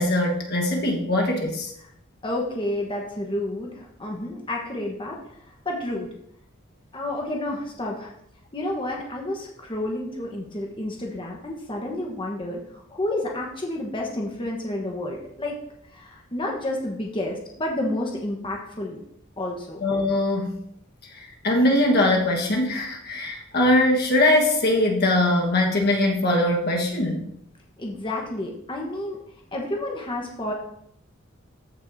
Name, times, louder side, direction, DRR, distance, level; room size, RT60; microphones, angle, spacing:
voice 1, 0.0-1.7 19.8-20.6 21.4-27.2, left 1 dB, 55° left, 0 dB, 1.4 m, -21 dB
voice 2, 2.2-5.4 5.6-6.1 6.9-8.1 8.5-15.6 15.9-19.0 19.4-19.8 27.8-29.2 29.5-30.5, left 1 dB, 25° left, 0 dB, 1.2 m, -30 dB
14.0 x 6.3 x 2.7 m, 0.71 s
head